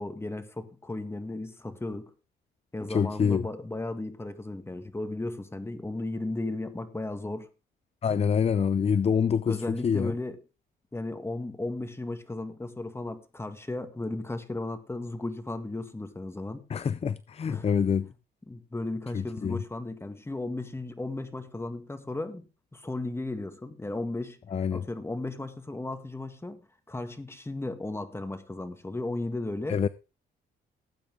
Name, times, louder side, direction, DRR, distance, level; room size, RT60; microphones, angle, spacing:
voice 1, 0.0-2.1 2.7-7.5 9.5-10.4 10.9-16.6 17.5-17.7 18.5-24.4 24.7-26.6 26.9-29.8, left 2 dB, 10° left, 2.0 m, -35 dB
voice 2, 2.9-3.5 8.0-10.1 16.7-18.1 19.1-19.6 24.5-24.8 29.7-29.9, left 6 dB, 30° left, 0.5 m, -26 dB
18.0 x 8.7 x 3.7 m
cardioid pair, 90°, 20 cm